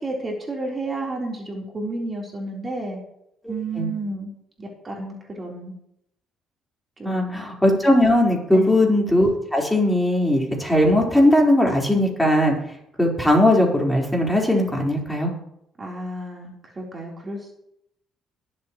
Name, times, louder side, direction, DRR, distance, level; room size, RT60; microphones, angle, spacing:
voice 1, 0.0-3.0 3.5-4.3 4.6-5.7 7.0-7.4 8.5-8.9 15.8-17.5, right 2 dB, 30° right, -1 dB, 3.7 m, -31 dB
voice 2, 3.4-3.9 7.0-12.5 13.0-15.3, left 1 dB, 5° left, -2 dB, 4.2 m, -19 dB
22.0 x 7.6 x 3.1 m, 0.77 s
hypercardioid pair, 55°, 0 cm